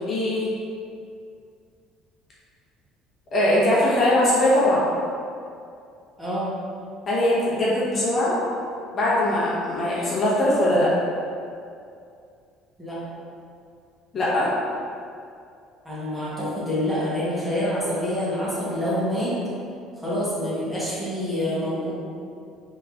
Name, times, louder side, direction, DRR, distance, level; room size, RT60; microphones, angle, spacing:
voice 1, 0.1-0.5 3.3-4.8 7.1-8.4 8.9-10.9 14.1-14.5, left 1 dB, 30° left, -8 dB, 0.8 m, -21 dB
voice 2, 6.2-6.5 12.8-13.0 15.8-19.3 20.0-21.9, left 1 dB, 10° right, -9 dB, 0.8 m, -26 dB
3.6 x 3.1 x 2.3 m, 2.4 s
cardioid pair, 145°, 0 cm